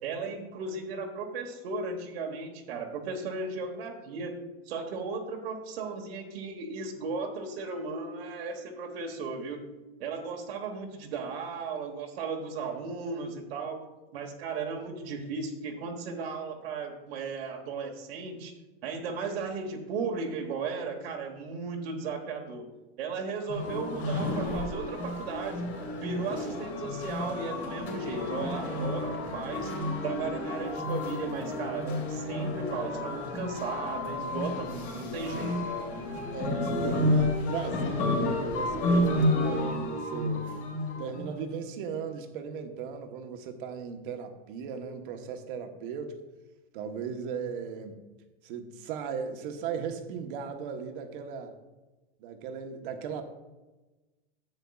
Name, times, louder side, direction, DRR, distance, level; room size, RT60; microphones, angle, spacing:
voice 1, 0.0-9.6 10.0-13.8 14.1-18.5 18.8-22.6 23.0-25.7 26.0-29.7 30.0-35.5, right 4 dB, 75° right, 1 dB, 1.4 m, -36 dB
sound 1, 23.5-41.3, left 1 dB, 55° left, 2.8 m, -31 dB
voice 2, 36.3-40.5 41.0-46.2 46.7-48.0 48.4-51.5 52.2-53.2, right 6 dB, 60° right, 6 dB, 1.1 m, -37 dB
10.5 x 8.1 x 2.4 m, 1.1 s
supercardioid pair, 155°, 30 cm